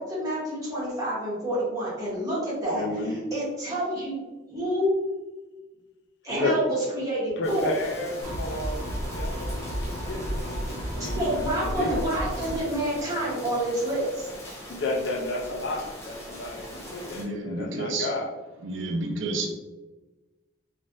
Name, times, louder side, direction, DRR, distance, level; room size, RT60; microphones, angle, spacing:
voice 1, 0.0-2.8 3.3-4.2 4.5-4.9 6.2-7.7 11.1-14.3, right 1 dB, 15° right, -8 dB, 1.2 m, -28 dB
voice 2, 2.7-3.2 6.4-6.5 7.4-11.3 11.6-12.0 14.7-18.3, left 2 dB, 60° left, 2 dB, 0.4 m, -32 dB
sound 1, 7.4-17.2, equal, 15° left, 0.6 m, -42 dB
sound 2, 8.2-12.6, equal, 45° right, 1.0 m, -32 dB
voice 3, 16.8-18.1 18.6-19.5, right 2 dB, 75° right, 2 dB, 0.5 m, -31 dB
3.1 x 2.5 x 2.6 m, 1.1 s
head